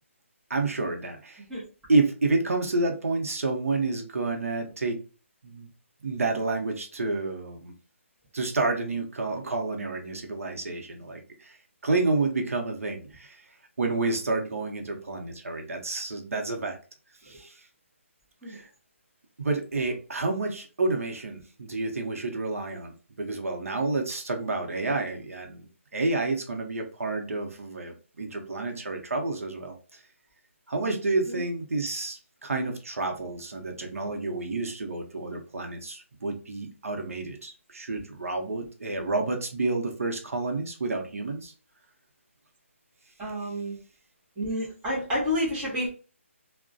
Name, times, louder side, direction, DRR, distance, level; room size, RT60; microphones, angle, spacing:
voice 1, 0.5-1.4 1.9-5.0 5.4-5.7 6.0-7.7 8.3-11.6 11.8-13.5 13.8-16.8 17.2-17.6 18.5-18.7 19.4-30.0 30.7-41.5, right 3 dB, 85° right, 3 dB, 0.7 m, -29 dB
voice 2, 43.2-43.7 44.4-45.9, equal, 5° right, -9 dB, 0.8 m, -29 dB
2.3 x 2.1 x 2.5 m, 0.36 s
hypercardioid pair, 175°, 7 cm